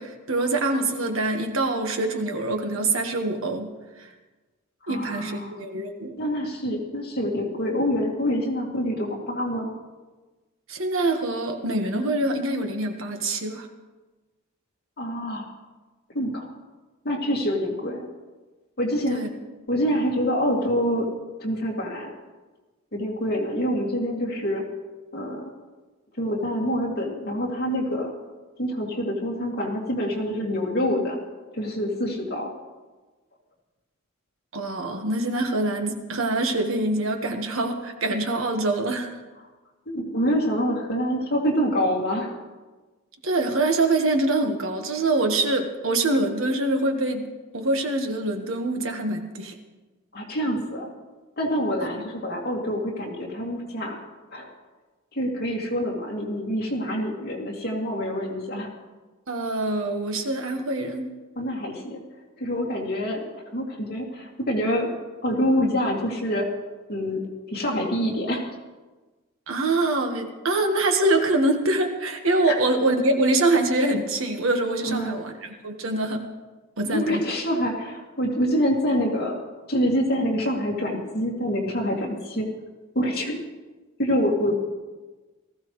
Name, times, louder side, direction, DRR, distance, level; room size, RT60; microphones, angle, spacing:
voice 1, 0.0-3.7 4.0-4.1 4.9-6.2 10.7-13.7 19.1-19.3 34.5-39.2 43.2-49.5 51.8-51.9 59.3-61.1 69.5-76.3 76.8-77.2, right 2 dB, 70° right, 4 dB, 1.4 m, -24 dB
voice 2, 4.9-5.6 6.2-9.7 15.0-15.4 16.1-16.5 17.0-18.1 18.8-19.3 19.7-21.1 21.4-22.1 22.9-24.6 25.1-25.5 26.2-28.1 28.6-31.2 31.5-32.5 39.9-42.3 50.1-50.9 51.4-54.0 54.3-54.5 55.1-58.7 61.4-62.0 62.4-63.2 63.5-64.9 65.2-66.5 66.9-67.2 67.5-68.4 72.5-72.6 74.8-75.2 76.9-79.4 79.7-82.5 82.9-83.4 84.0-84.6, equal, 50° left, -2 dB, 2.4 m, -26 dB
19.0 x 14.5 x 3.2 m, 1.2 s
head